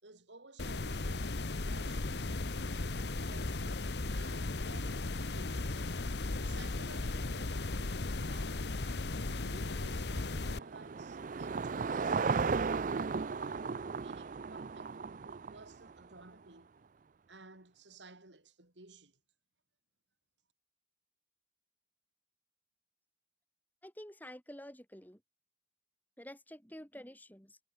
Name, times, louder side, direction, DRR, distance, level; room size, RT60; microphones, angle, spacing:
voice 1, 0.0-2.3 3.2-5.8 6.4-8.7 9.3-13.6 14.0-16.7 17.3-19.2, right 3 dB, 80° right, 4.2 m, -56 dB
sound 1, 0.6-10.6, left 2 dB, 65° left, 1.1 m, -36 dB
Car passing by / Engine, 9.7-16.1, right 5 dB, 45° right, 0.4 m, -35 dB
voice 2, 23.8-25.2 26.2-27.6, equal, 10° left, 5.3 m, -49 dB
head